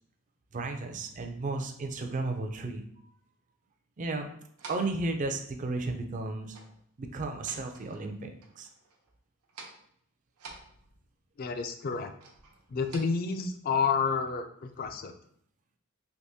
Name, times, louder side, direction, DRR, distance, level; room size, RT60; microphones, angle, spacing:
voice 1, 0.5-2.8 4.0-4.3 4.7-6.6 7.0-8.7, right 2 dB, 35° right, 5 dB, 0.4 m, -34 dB
sound 1, 4.6-5.0 6.5-6.8 7.1-8.1 8.4-9.1 9.4-9.9 10.4-11.2 12.2-13.0, right 4 dB, 80° right, 0.7 m, -49 dB
voice 2, 11.4-12.1 12.7-15.1, left 5 dB, 40° left, 7 dB, 0.3 m, -30 dB
3.5 x 2.9 x 2.7 m, 0.66 s
head